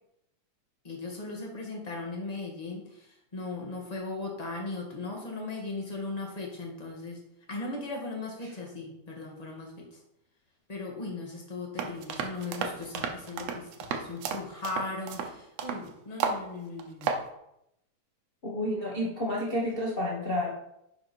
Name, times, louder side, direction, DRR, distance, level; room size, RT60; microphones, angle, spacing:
voice 1, 0.8-7.2 7.5-10.0 10.7-17.1, left 3 dB, 15° left, -1 dB, 1.5 m, -38 dB
sound 1, 11.8-15.8 16.2-16.4 16.8-17.2, right 6 dB, 70° right, 1.7 m, -33 dB
voice 2, 18.4-20.6, left 1 dB, 40° left, -5 dB, 0.7 m, -30 dB
10.5 x 5.1 x 4.4 m, 0.81 s
omnidirectional pair, 3.4 m